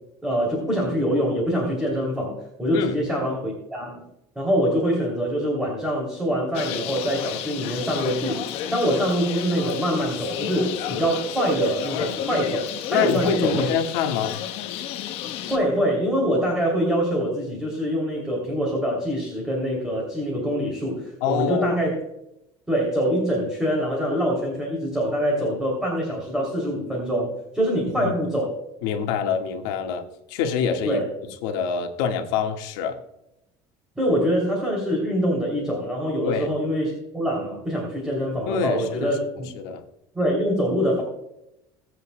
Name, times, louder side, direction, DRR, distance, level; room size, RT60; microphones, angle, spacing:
voice 1, 0.2-4.0 4.3-8.4 8.7-13.7 15.4-21.9 22.7-28.6 30.8-31.1 34.0-39.5 40.1-41.0, equal, 5° right, -2 dB, 3.0 m, -24 dB
Bird, 6.5-15.6, left 10 dB, 60° left, 1.1 m, -31 dB
voice 2, 12.9-14.4 21.2-21.7 28.0-28.1 28.8-31.0 31.4-33.0 36.2-36.5 38.5-39.1 39.5-39.8, left 6 dB, 85° left, 4 dB, 1.6 m, -25 dB
22.0 x 8.1 x 2.2 m, 0.84 s
cardioid pair, 155°, 11 cm